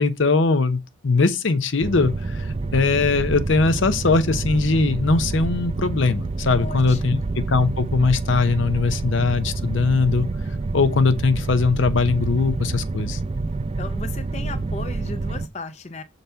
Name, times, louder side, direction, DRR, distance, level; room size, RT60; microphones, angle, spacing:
voice 1, 0.0-10.3 10.7-13.2, left 4 dB, 70° left, 0.7 m, -20 dB
sound 1, 1.8-15.5, right 3 dB, 30° right, 0.3 m, -28 dB
voice 2, 6.5-7.3 13.8-16.0, left 3 dB, 35° left, 0.5 m, -36 dB
6.8 x 4.0 x 4.4 m
head